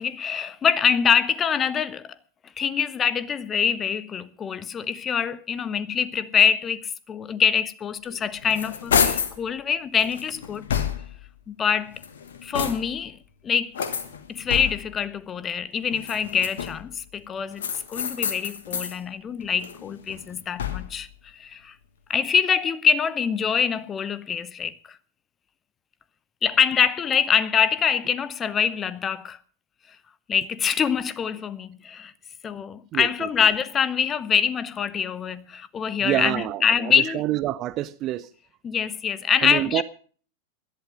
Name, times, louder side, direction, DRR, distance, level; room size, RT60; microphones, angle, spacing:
voice 1, 0.0-2.2 2.6-10.7 11.5-12.0 12.4-13.2 13.4-13.7 14.3-21.7 22.1-25.0 26.4-29.4 30.3-32.1 32.4-37.2 38.6-39.8, left 7 dB, 25° left, 0.8 m, -24 dB
sound 1, 8.1-9.4 10.0-11.3 11.9-13.1 13.7-15.0 15.9-16.9 17.6-19.0 19.4-21.1, left 7 dB, 65° left, 1.5 m, -29 dB
voice 2, 32.9-33.3 36.0-38.3 39.4-39.8, right 14 dB, 35° right, 0.5 m, -27 dB
16.0 x 11.0 x 5.2 m
figure-of-eight pair, 90°, 0 cm